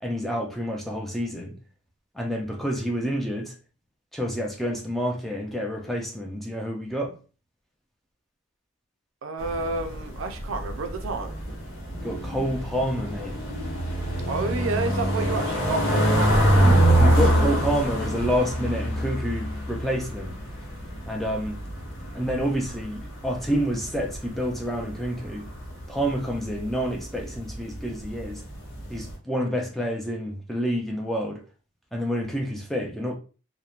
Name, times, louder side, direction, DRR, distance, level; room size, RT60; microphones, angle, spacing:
voice 1, 0.0-1.6 2.1-3.5 4.1-7.2 12.0-13.4 16.6-20.4 21.1-21.6 22.1-25.5 25.9-28.4 28.9-31.4 31.9-33.1, equal, ahead, 0.3 m, -28 dB
voice 2, 9.2-11.4 14.3-16.8, right 3 dB, 70° right, 0.4 m, -30 dB
sound 1, 9.4-29.1, right 1 dB, 90° left, 0.8 m, -25 dB
2.8 x 2.1 x 2.3 m
head